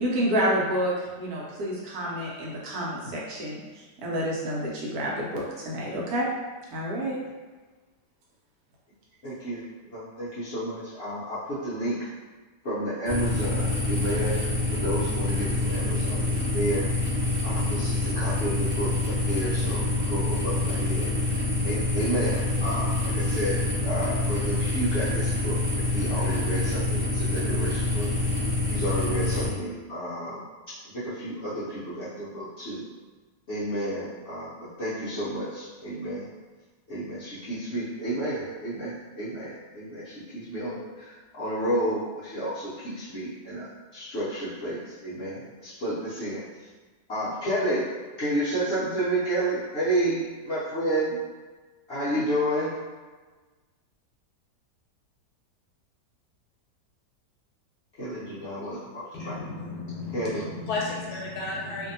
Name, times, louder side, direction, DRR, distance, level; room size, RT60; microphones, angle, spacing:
voice 1, 0.0-3.6 4.0-6.3 6.7-7.2, equal, 70° right, -5 dB, 1.1 m, -28 dB
voice 2, 9.2-9.6 9.8-12.1 12.6-14.4 14.7-16.9 17.4-28.1 28.7-32.8 33.5-36.3 36.9-46.4 47.1-47.9 48.2-51.2 51.9-52.8 58.0-59.4 60.1-60.4, right 1 dB, 60° left, -11 dB, 0.7 m, -31 dB
sound 1, 13.1-29.5, left 2 dB, 25° left, 0.7 m, -26 dB
voice 3, 59.1-61.9, left 3 dB, 75° left, -3 dB, 1.1 m, -33 dB
2.6 x 2.6 x 2.6 m, 1.3 s
omnidirectional pair, 1.8 m